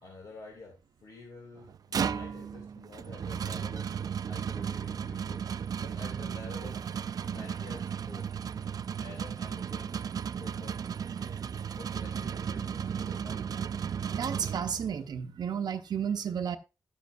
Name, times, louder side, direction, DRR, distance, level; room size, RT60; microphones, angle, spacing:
voice 1, 0.0-3.9 4.3-5.5 5.8-6.9 7.2-8.3 9.0-10.0 10.4-10.8 11.2-13.5, left 3 dB, 75° left, 2.1 m, -49 dB
sound 1, 1.6-15.1, right 7 dB, 65° right, 0.4 m, -35 dB
voice 2, 14.1-16.6, right 7 dB, 85° right, 0.7 m, -32 dB
12.0 x 9.4 x 2.4 m
wide cardioid pair, 90°, 7 cm